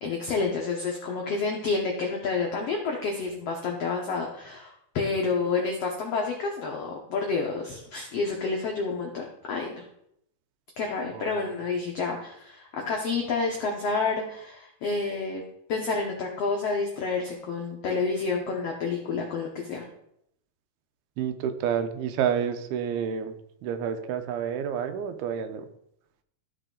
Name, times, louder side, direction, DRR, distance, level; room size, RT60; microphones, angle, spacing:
voice 1, 0.0-9.8 10.8-15.4 15.7-19.8, left 4 dB, 85° left, 0 dB, 1.3 m, -29 dB
voice 2, 21.2-25.7, right 8 dB, 85° right, 8 dB, 2.8 m, -29 dB
13.0 x 5.9 x 3.8 m, 0.75 s
omnidirectional pair, 4.4 m